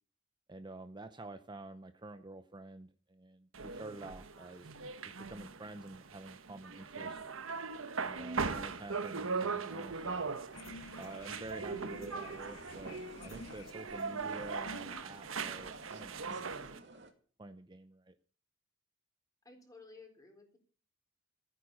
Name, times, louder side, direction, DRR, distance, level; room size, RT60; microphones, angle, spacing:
voice 1, 0.5-4.7 5.0-7.2 8.0-10.3 11.0-17.0 17.4-18.2, right 2 dB, 20° right, 9 dB, 0.7 m, -49 dB
sound 1, 3.5-16.8, right 4 dB, 80° right, 1.2 m, -40 dB
sound 2, 9.8-17.1, right 2 dB, 60° right, 2.3 m, -55 dB
sound 3, 10.5-15.9, left 2 dB, 75° left, 1.1 m, -52 dB
voice 2, 19.4-20.6, left 3 dB, 15° left, 3 dB, 4.1 m, -55 dB
14.0 x 9.7 x 7.1 m, 0.42 s
head